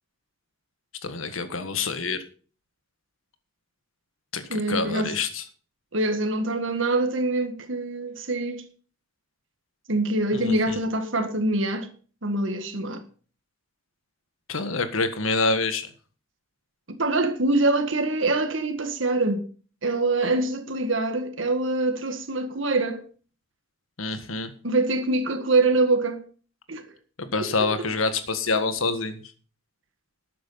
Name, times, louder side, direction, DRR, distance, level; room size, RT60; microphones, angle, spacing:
voice 1, 1.0-2.2 4.3-5.4 10.3-10.8 14.5-15.9 24.0-24.5 27.2-29.2, left 3 dB, 85° left, 1.7 m, -27 dB
voice 2, 4.5-5.1 5.9-8.6 9.9-11.9 12.2-13.0 16.9-19.4 19.8-23.0 24.6-26.2 26.7-26.9 27.6-27.7, right 2 dB, 65° right, 1.9 m, -24 dB
12.5 x 8.6 x 5.7 m
head